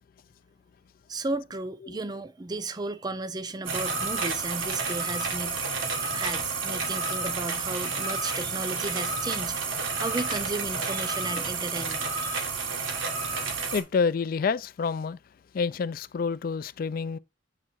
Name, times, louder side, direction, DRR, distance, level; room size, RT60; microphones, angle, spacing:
voice 1, 1.1-5.6 6.0-12.4, right 2 dB, 20° right, 0.5 m, -34 dB
sound 1, 3.7-13.8, right 4 dB, 85° right, 1.5 m, -30 dB
voice 2, 13.7-15.2 15.5-17.2, left 5 dB, 45° left, 0.3 m, -28 dB
7.7 x 3.7 x 4.5 m
head